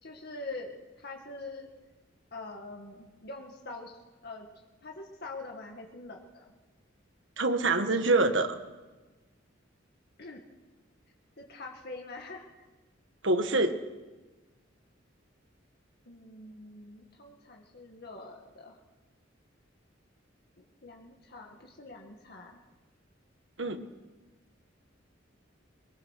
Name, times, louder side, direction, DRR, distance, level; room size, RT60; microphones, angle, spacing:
voice 1, 0.0-1.7 2.3-4.5 4.8-6.5 10.2-10.4 11.4-12.5 16.1-18.8 20.6-22.6, left 2 dB, 55° left, 1 dB, 1.9 m, -44 dB
voice 2, 7.4-8.6 13.2-13.8 23.6-23.9, right 2 dB, 70° right, 8 dB, 1.7 m, -25 dB
23.0 x 21.5 x 6.6 m, 1.2 s
head